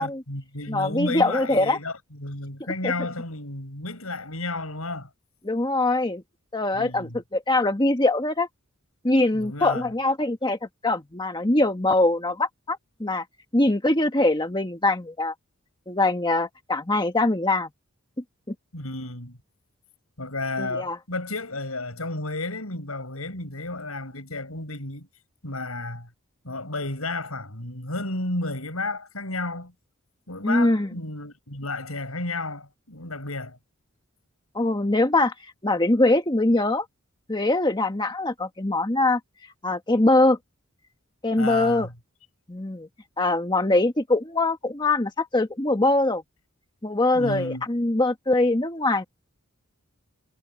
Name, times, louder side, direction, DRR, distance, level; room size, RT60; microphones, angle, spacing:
voice 1, 0.0-5.1 6.7-7.2 9.3-9.9 18.7-19.4 20.2-25.1 25.4-26.1 26.4-29.7 30.3-33.6 41.4-41.9 47.1-47.6, left 2 dB, 80° left, 7.8 m, -32 dB
voice 2, 0.7-1.8 2.8-2.9 5.4-6.2 6.5-8.5 9.0-10.6 10.8-13.2 13.5-15.3 15.9-17.7 20.6-21.0 30.4-30.9 34.5-35.3 35.6-36.8 37.3-39.2 39.6-40.4 41.2-41.9 42.5-42.9 43.2-46.2 46.8-49.0, left 2 dB, 20° left, 1.4 m, -22 dB
head